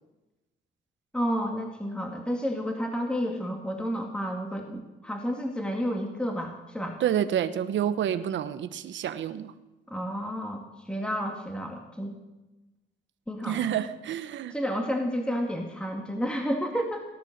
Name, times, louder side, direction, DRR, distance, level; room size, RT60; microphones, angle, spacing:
voice 1, 1.1-7.0 9.9-12.2 13.3-13.6 14.5-17.0, equal, 5° left, 2 dB, 2.1 m, -31 dB
voice 2, 7.0-9.5 13.5-14.6, right 10 dB, 70° right, 11 dB, 1.1 m, -28 dB
19.0 x 11.0 x 6.7 m, 1.1 s
cardioid pair, 90°, 20 cm